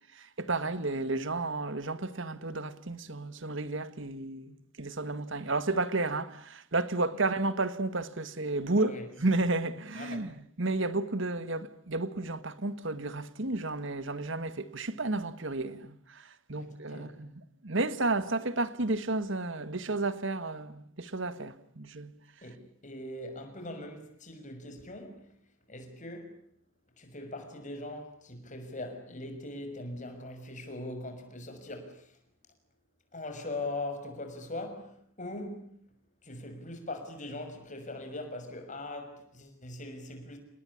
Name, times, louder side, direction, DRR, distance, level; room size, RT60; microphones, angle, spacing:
voice 1, 0.1-22.1, right 2 dB, 60° right, 1.6 m, -32 dB
voice 2, 9.9-10.3 16.6-17.1 22.4-25.2 25.7-26.3 27.0-32.2 33.1-35.8 36.2-40.4, left 2 dB, 35° left, 6.2 m, -41 dB
28.0 x 21.0 x 9.9 m
head